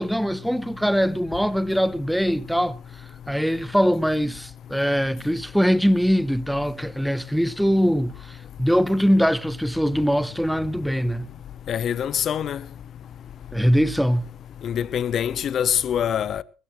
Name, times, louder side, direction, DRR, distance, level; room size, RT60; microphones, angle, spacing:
voice 1, 0.0-2.8 3.3-11.3 13.5-14.2, equal, ahead, 0.9 m, -22 dB
voice 2, 11.7-12.6 14.6-16.4, left 9 dB, 45° left, 0.9 m, -24 dB
20.5 x 15.5 x 3.2 m
hypercardioid pair, 70°, 0 cm